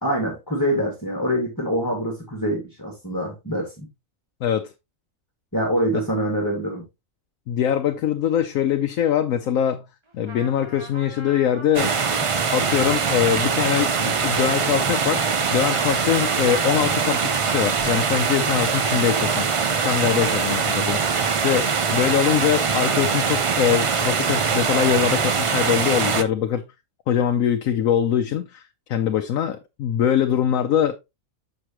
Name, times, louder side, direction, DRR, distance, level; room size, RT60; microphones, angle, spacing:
voice 1, 0.0-3.9 5.5-6.8, equal, 15° left, 1.8 m, -25 dB
voice 2, 4.4-4.7 7.5-9.8 10.1-12.0 12.5-15.2 15.5-26.6 27.1-30.9, left 9 dB, 80° left, 1.1 m, -23 dB
Trumpet, 10.1-20.9, right 2 dB, 20° right, 1.2 m, -40 dB
sound 1, 11.7-26.2, right 5 dB, 60° right, 0.3 m, -22 dB
6.7 x 6.2 x 2.9 m
omnidirectional pair, 1.4 m